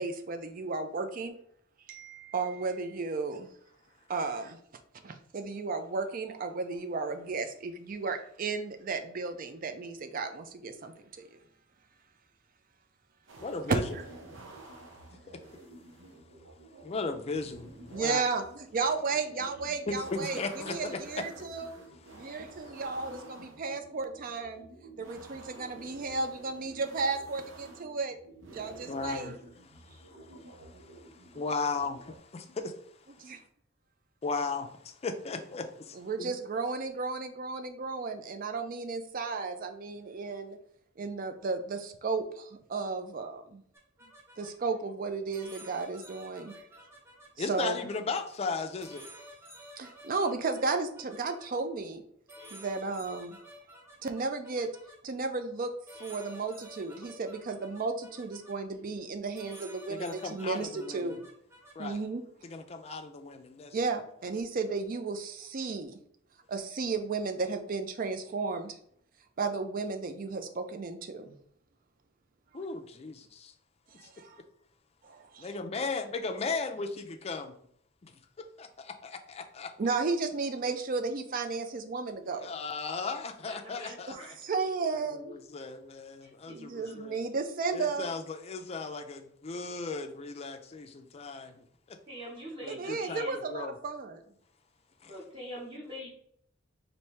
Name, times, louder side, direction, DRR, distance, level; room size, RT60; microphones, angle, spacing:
voice 1, 0.0-1.4 1.9-3.5 4.1-4.6 5.0-10.9 11.3-11.4 13.7-14.0 17.9-18.4 18.7-21.8 22.1-24.7 25.0-28.2 28.5-29.3 33.2-33.4 35.9-40.6 41.0-43.6 44.4-46.5 47.4-47.8 49.8-52.0 52.5-53.4 54.0-54.7 55.0-55.7 56.0-61.2 61.8-62.2 63.7-66.0 66.5-68.8 69.4-71.4 74.0-74.4 75.0-75.5 79.8-82.5 84.1-85.3 86.5-88.1 92.7-94.2, right 4 dB, 45° right, 7 dB, 0.5 m, -34 dB
sound 1, 13.3-32.2, right 2 dB, 90° right, 0.8 m, -51 dB
voice 2, 13.4-13.8 14.3-14.4 16.8-18.2 19.9-21.5 22.1-22.8 28.9-29.4 29.7-32.8 34.2-36.3 47.4-49.0 59.9-61.1 61.8-62.0 62.4-63.8 72.5-73.5 74.0-74.1 75.4-76.9 77.2-77.5 78.6-79.7 82.4-84.2 85.1-87.2 87.7-92.0 92.6-93.7 95.0-95.1, left 4 dB, 35° left, 6 dB, 0.4 m, -36 dB
sound 2, 43.7-44.5 45.3-48.0 48.8-51.5 52.3-55.0 55.9-58.5 59.3-61.9, equal, 15° right, 0.9 m, -51 dB
voice 3, 83.5-84.4 86.2-86.5 86.8-86.9 92.1-93.3 95.1-96.1, equal, 30° right, -8 dB, 1.4 m, -44 dB
4.3 x 2.6 x 3.3 m, 0.66 s
head